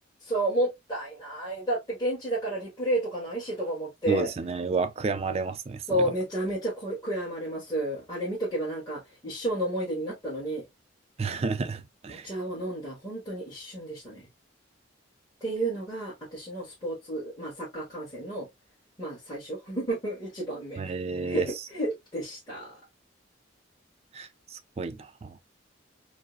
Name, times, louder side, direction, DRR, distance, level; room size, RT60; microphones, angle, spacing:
voice 1, 0.2-4.3 5.9-10.6 12.1-14.3 15.4-18.5 19.0-20.8 21.2-22.8, right 1 dB, 20° left, 1.4 m, -31 dB
voice 2, 4.1-6.1 11.2-12.3 20.8-21.6 24.1-25.4, right 4 dB, 30° right, 0.3 m, -31 dB
4.9 x 2.0 x 2.3 m
head